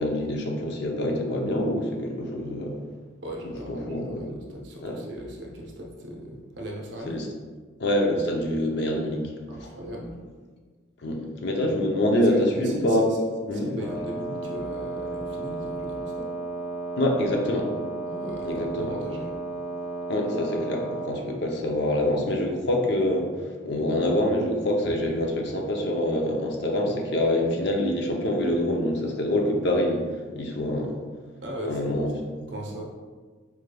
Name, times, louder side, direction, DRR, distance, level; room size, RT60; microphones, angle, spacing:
voice 1, 0.0-2.8 3.4-4.2 4.8-5.0 7.1-7.3 7.8-9.2 9.6-9.7 11.0-13.1 13.5-13.9 17.0-17.7 18.5-18.9 20.1-23.3 23.6-30.0 30.3-31.0 31.7-32.1, left 1 dB, 55° left, 1 dB, 0.5 m, -25 dB
voice 2, 3.2-7.2 9.5-10.2 12.2-13.0 13.5-16.3 18.0-19.4 31.4-32.9, equal, 60° right, -1 dB, 0.7 m, -37 dB
Wind instrument woodwind instrument, 13.8-21.2, right 2 dB, 30° right, 0.9 m, -33 dB
4.6 x 3.3 x 2.2 m, 1.5 s
head